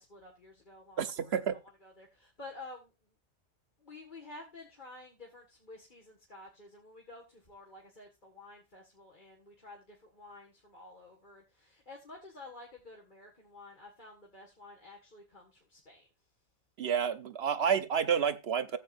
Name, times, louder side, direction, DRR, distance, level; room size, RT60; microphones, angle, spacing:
voice 1, 0.0-2.9 3.8-16.1, left 2 dB, 45° left, 2.1 m, -51 dB
voice 2, 1.0-1.6 16.8-18.8, right 7 dB, 70° right, 1.1 m, -30 dB
15.0 x 8.4 x 2.6 m
omnidirectional pair, 1.1 m